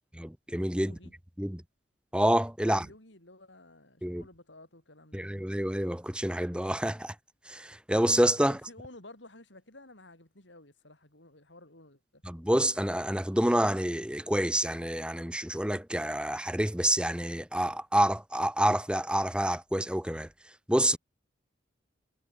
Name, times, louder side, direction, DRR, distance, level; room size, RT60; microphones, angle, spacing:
voice 1, 0.1-1.0 1.4-1.6 2.1-2.9 4.0-4.3 5.1-7.2 7.5-8.6 12.2-21.0, right 1 dB, 5° right, 1.7 m, -28 dB
voice 2, 0.8-1.1 2.7-5.3 8.5-12.2, left 2 dB, 75° left, 6.8 m, -52 dB
head